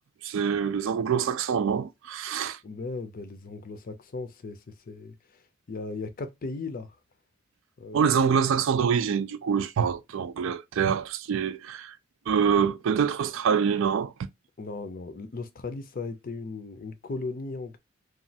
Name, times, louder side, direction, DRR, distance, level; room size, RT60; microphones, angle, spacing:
voice 1, 0.2-2.6 7.9-12.0 12.3-14.1, right 7 dB, 70° right, 0.3 m, -25 dB
voice 2, 2.6-5.1 5.7-7.0 7.8-8.2 14.6-17.8, left 3 dB, 45° left, 0.5 m, -37 dB
3.0 x 2.3 x 2.7 m
head